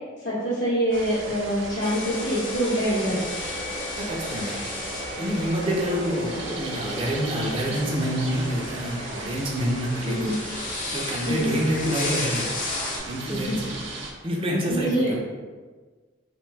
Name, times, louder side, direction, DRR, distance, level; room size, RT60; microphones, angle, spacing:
voice 1, 0.2-3.2 10.1-10.4 11.2-11.6 13.5-13.6 14.7-15.1, equal, 75° left, -10 dB, 0.8 m, -25 dB
sound 1, 0.9-14.1, right 2 dB, 85° right, 0.5 m, -38 dB
sound 2, 1.8-13.0, left 2 dB, 45° left, 0.5 m, -34 dB
voice 2, 4.0-4.5 5.2-10.3 10.9-12.5 13.0-13.7 14.2-15.2, equal, 30° right, -2 dB, 0.4 m, -27 dB
3.0 x 2.2 x 3.2 m, 1.4 s
head